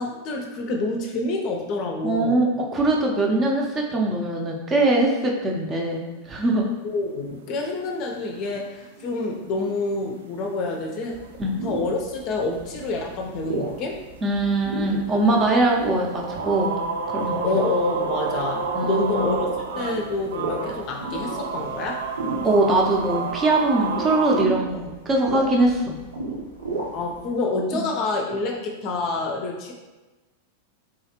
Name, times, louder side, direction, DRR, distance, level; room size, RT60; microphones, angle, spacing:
voice 1, 0.0-2.4 6.8-11.2 11.6-14.0 17.4-19.5 19.7-22.3 26.9-29.7, left 3 dB, 40° left, 1 dB, 0.5 m, -27 dB
voice 2, 2.0-6.6 11.4-11.5 14.2-16.7 17.1-17.6 18.7-19.3 22.4-26.0 27.7-27.8, right 2 dB, 20° right, -1 dB, 0.7 m, -22 dB
sound 1, 7.3-7.6 7.9-8.0 8.3-24.4, right 4 dB, 60° right, 0.4 m, -31 dB
sound 2, 11.1-27.2, right 3 dB, 75° right, 0.9 m, -35 dB
3.8 x 3.1 x 2.9 m, 1.2 s
figure-of-eight pair, 90°, 0 cm